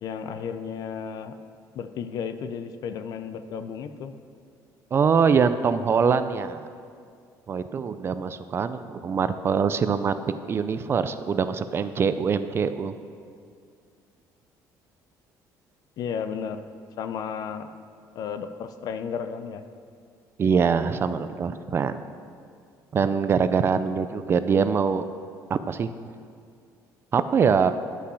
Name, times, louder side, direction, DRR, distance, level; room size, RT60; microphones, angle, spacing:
voice 1, 0.0-1.3 1.7-4.1 16.0-16.7 17.0-17.7 18.2-19.6, left 7 dB, 60° left, 10 dB, 0.6 m, -33 dB
voice 2, 4.9-6.7 7.5-10.1 10.5-12.9 20.4-21.9 22.9-25.1 25.5-25.9 27.1-27.7, right 6 dB, 35° right, 11 dB, 0.4 m, -23 dB
10.5 x 5.7 x 6.3 m, 2.3 s
cardioid pair, 130°, 7 cm